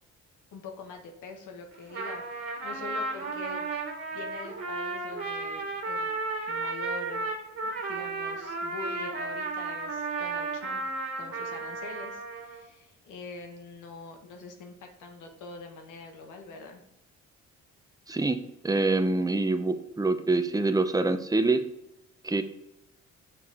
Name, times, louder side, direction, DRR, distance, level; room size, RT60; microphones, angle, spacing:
voice 1, 0.5-3.6 4.1-6.1 6.5-7.3 7.6-10.8 11.2-16.8, left 3 dB, 85° left, 3 dB, 1.5 m, -44 dB
Trumpet, 1.7-12.6, right 3 dB, 45° right, 2.3 m, -34 dB
voice 2, 18.1-21.6 22.2-22.4, right 3 dB, 10° right, 8 dB, 0.8 m, -25 dB
6.7 x 6.6 x 3.6 m, 0.83 s
cardioid pair, 90°, 30 cm